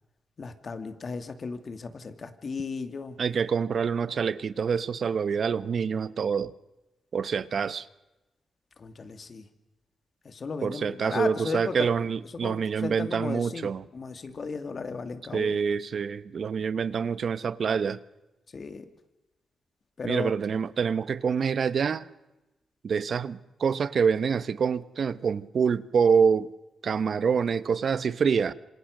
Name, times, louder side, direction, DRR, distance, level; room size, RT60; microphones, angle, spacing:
voice 1, 0.4-3.2 8.8-9.4 10.2-12.1 12.4-15.6 18.5-18.8 20.0-20.3, left 4 dB, 50° left, 2.6 m, -35 dB
voice 2, 3.2-6.5 7.1-7.9 10.6-13.8 15.3-18.0 20.0-22.1 22.8-26.5 26.8-28.5, right 6 dB, 60° right, 1.0 m, -26 dB
27.0 x 26.0 x 6.7 m
cardioid pair, 95°, 0 cm